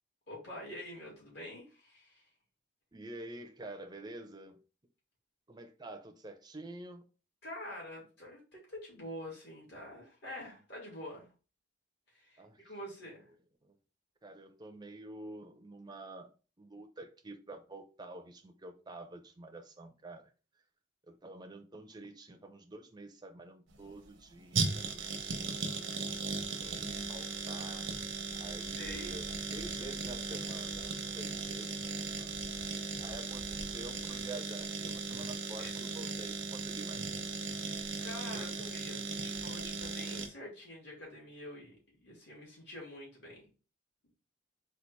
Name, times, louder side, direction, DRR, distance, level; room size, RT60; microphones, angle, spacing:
voice 1, 0.3-2.3 7.4-11.3 12.1-13.3 28.8-29.2 35.6-35.9 37.4-43.4, left 1 dB, 60° left, 2.3 m, -47 dB
voice 2, 2.9-4.6 5.5-7.0 12.4-12.7 13.6-13.7 14.2-16.3 16.6-20.2 21.1-25.9 26.4-27.9 28.4-32.4 33.0-37.1 38.3-38.5 39.2-39.3, right 2 dB, 20° right, 0.6 m, -48 dB
sound 1, 23.7-40.3, right 4 dB, 80° right, 0.8 m, -37 dB
sound 2, 24.7-34.3, right 1 dB, 45° left, 2.4 m, -54 dB
4.1 x 2.5 x 4.6 m
head